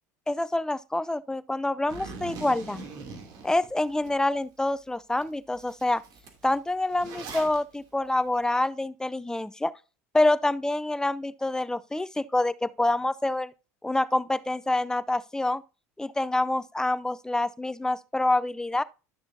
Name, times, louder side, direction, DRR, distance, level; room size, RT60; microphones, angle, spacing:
voice 1, 0.3-2.8 3.4-6.0 6.4-9.7 10.1-13.5 13.8-15.6 16.0-18.8, left 2 dB, 5° left, 0.5 m, -27 dB
Zipper (clothing), 1.9-4.1 4.6-4.7 5.2-5.3 5.5-7.6, right 3 dB, 55° right, 2.8 m, -41 dB
12.0 x 6.8 x 2.7 m
hypercardioid pair, 85°, 8 cm